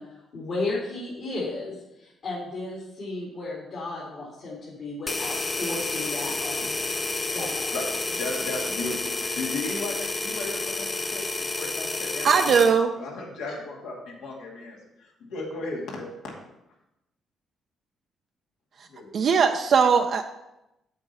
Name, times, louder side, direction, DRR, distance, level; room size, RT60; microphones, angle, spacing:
voice 1, 0.0-6.9 7.3-7.7, left 2 dB, 60° left, -6 dB, 2.7 m, -34 dB
sound 1, 5.1-12.8, left 3 dB, 30° left, 0.7 m, -30 dB
voice 2, 7.7-12.5 13.0-16.1 18.9-19.1, left 2 dB, 80° left, -2 dB, 2.3 m, -35 dB
voice 3, 12.2-12.9 19.1-20.2, right 6 dB, 60° right, 4 dB, 0.5 m, -19 dB
7.9 x 4.5 x 6.9 m, 0.91 s
cardioid pair, 75°, 0 cm